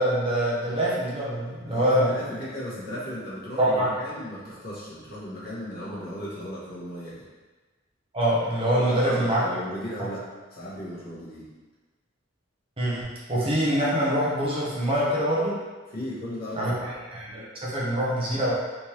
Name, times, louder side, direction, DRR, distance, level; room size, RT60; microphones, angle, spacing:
voice 1, 0.0-2.1 3.6-3.9 8.1-9.4 12.8-15.5 16.5-18.5, right 1 dB, 30° right, -7 dB, 0.8 m, -24 dB
voice 2, 1.7-7.2 8.7-10.2 10.5-11.5 15.9-16.8, equal, 50° left, -8 dB, 1.2 m, -36 dB
3.5 x 3.0 x 2.8 m, 1.3 s
head